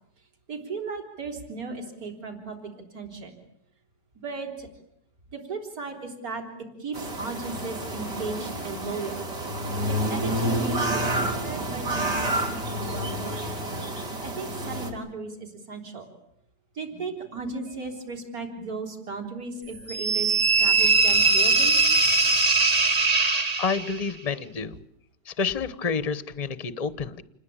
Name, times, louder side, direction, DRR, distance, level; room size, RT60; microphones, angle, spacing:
voice 1, 0.5-3.4 4.2-4.7 5.3-6.4 6.8-9.3 9.9-13.5 14.2-16.1 16.7-21.8, right 4 dB, 50° right, 3 dB, 4.0 m, -36 dB
sound 1, 6.9-14.9, right 1 dB, 65° right, 4.6 m, -29 dB
sound 2, 19.9-24.1, right 4 dB, 25° right, 1.1 m, -21 dB
voice 2, 23.6-24.8 25.2-27.2, left 5 dB, 25° left, 14 dB, 0.9 m, -29 dB
28.0 x 20.5 x 8.8 m, 0.77 s
omnidirectional pair, 2.0 m